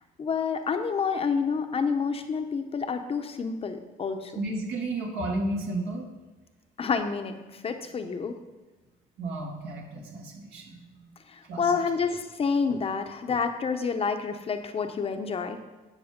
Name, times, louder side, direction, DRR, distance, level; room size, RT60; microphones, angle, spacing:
voice 1, 0.2-4.3 6.8-8.4 11.3-15.6, left 5 dB, 35° left, 7 dB, 0.8 m, -28 dB
voice 2, 4.3-6.1 9.2-11.1 11.5-11.8, right 2 dB, 75° right, -1 dB, 2.4 m, -33 dB
9.5 x 6.4 x 5.2 m, 1.2 s
cardioid pair, 110°, 17 cm